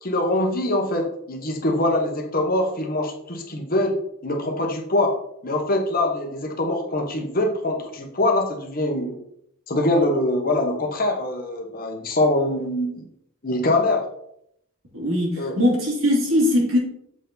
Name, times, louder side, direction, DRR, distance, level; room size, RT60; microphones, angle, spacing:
voice 1, 0.0-3.9 4.2-5.2 5.4-9.2 9.7-13.0 13.4-14.1 15.4-15.6, left 1 dB, 40° left, 3 dB, 1.1 m, -23 dB
voice 2, 14.9-16.8, left 1 dB, 70° right, -2 dB, 2.5 m, -20 dB
7.2 x 4.5 x 4.0 m, 0.73 s
head